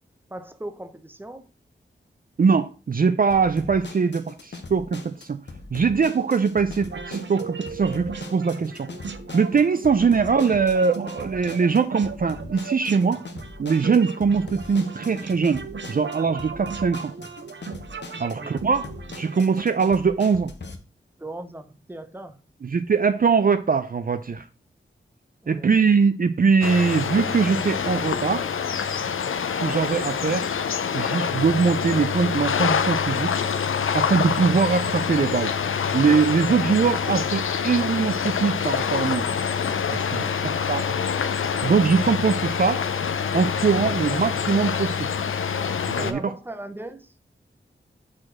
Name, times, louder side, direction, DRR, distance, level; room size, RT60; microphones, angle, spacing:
voice 1, 0.3-1.5 18.4-18.7 21.2-22.4 25.4-25.7 40.1-40.4 46.0-47.1, right 1 dB, 10° right, 0.8 m, -38 dB
voice 2, 2.4-5.4 5.7-8.9 9.3-13.2 13.6-17.1 18.2-18.9 19.1-20.5 22.6-24.5 25.5-28.4 29.6-30.5 30.9-33.3 33.9-35.5 35.9-39.3 39.9-40.2 40.7-40.8 41.6-42.8 43.3-45.1 45.9-46.2, right 5 dB, 45° right, 0.5 m, -22 dB
sound 1, 3.3-20.8, left 3 dB, 60° left, 1.0 m, -41 dB
sound 2, 6.9-19.6, right 5 dB, 65° right, 0.8 m, -37 dB
sound 3, 26.6-46.1, left 7 dB, 85° left, 0.6 m, -26 dB
5.0 x 4.3 x 5.9 m
wide cardioid pair, 65°, 20 cm